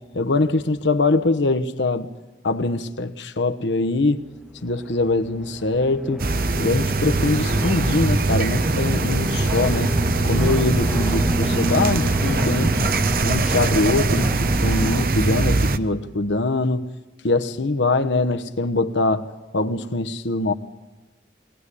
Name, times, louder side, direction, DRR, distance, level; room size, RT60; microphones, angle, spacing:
voice 1, 0.1-2.1 2.4-4.2 4.6-6.2 6.6-10.0 10.2-12.7 13.2-16.8 17.2-20.5, left 2 dB, 80° left, 9 dB, 1.0 m, -23 dB
sound 1, 4.1-15.0, equal, ahead, 1.1 m, -31 dB
sound 2, 6.2-15.8, right 3 dB, 50° right, 0.9 m, -22 dB
22.5 x 18.0 x 9.9 m, 1.2 s
head